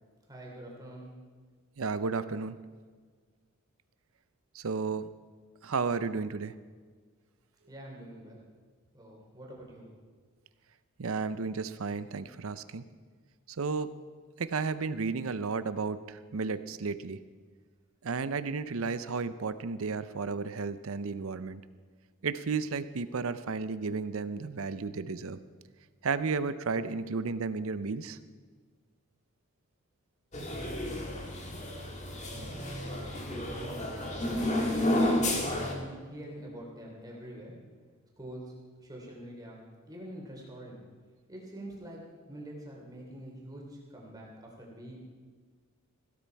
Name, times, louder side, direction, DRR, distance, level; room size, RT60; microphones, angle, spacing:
voice 1, 0.3-1.1 7.7-8.4 8.9-9.9 33.5-33.9 34.2-37.5 38.2-38.4 38.8-40.8 41.3-45.0, right 1 dB, 15° right, -2 dB, 3.2 m, -45 dB
voice 2, 1.8-2.6 4.5-5.1 5.6-6.5 11.0-12.8 13.6-13.9 14.4-17.2 18.0-21.6 22.2-25.4 26.0-28.2, right 4 dB, 65° right, 14 dB, 0.6 m, -33 dB
sound 1, 30.3-35.7, left 1 dB, 35° left, 1.7 m, -31 dB
16.0 x 12.5 x 4.6 m, 1.6 s
head